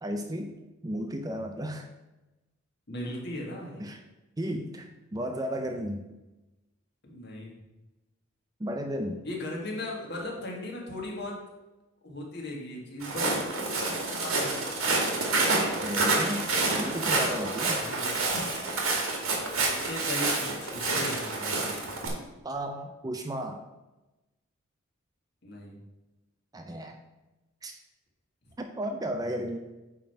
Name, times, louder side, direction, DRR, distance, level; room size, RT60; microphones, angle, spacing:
voice 1, 0.0-0.6 0.8-1.9 3.8-4.0 4.4-6.1 8.6-9.2 15.8-17.8 22.4-23.6 26.5-27.0 27.6-27.8 28.6-29.6, equal, 15° right, 5 dB, 0.4 m, -34 dB
voice 2, 2.9-3.9 7.0-7.6 9.2-11.4 12.0-14.8 17.7-18.2 19.2-21.8 25.4-25.8, left 1 dB, 50° left, -1 dB, 1.9 m, -38 dB
Walk footsteps, 13.0-22.1, right 3 dB, 85° right, 1.9 m, -28 dB
8.9 x 3.7 x 5.7 m, 1.0 s
head